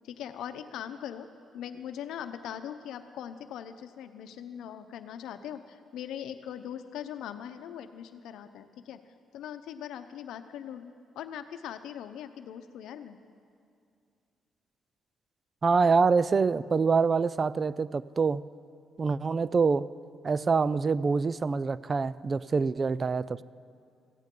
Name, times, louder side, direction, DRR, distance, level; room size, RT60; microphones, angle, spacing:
voice 1, 0.0-1.3 1.5-9.0 9.3-13.2, left 9 dB, 85° left, 10 dB, 0.7 m, -41 dB
voice 2, 15.6-18.4 19.0-19.9 20.2-23.4, right 4 dB, 35° right, 18 dB, 0.3 m, -25 dB
16.5 x 15.5 x 3.8 m, 2.4 s
cardioid pair, 90°, 0 cm